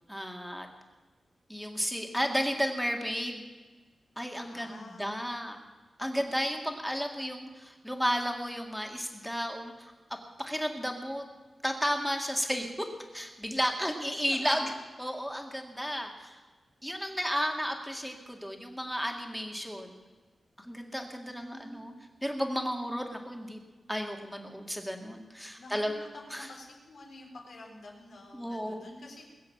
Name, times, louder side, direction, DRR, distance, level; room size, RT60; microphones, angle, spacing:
voice 1, 0.1-0.7 1.5-3.5 4.2-5.6 6.0-9.9 10.4-11.3 11.6-12.9 13.1-14.7 15.0-16.4 16.8-20.0 20.6-21.9 22.2-23.6 23.9-25.9 26.3-26.5 28.3-28.9, equal, ahead, 3 dB, 2.0 m, -33 dB
voice 2, 4.4-5.2 14.3-14.7 21.2-22.0 25.6-29.3, left 2 dB, 75° left, -1 dB, 4.0 m, -48 dB
21.0 x 7.7 x 7.2 m, 1.3 s
wide cardioid pair, 105°, 0 cm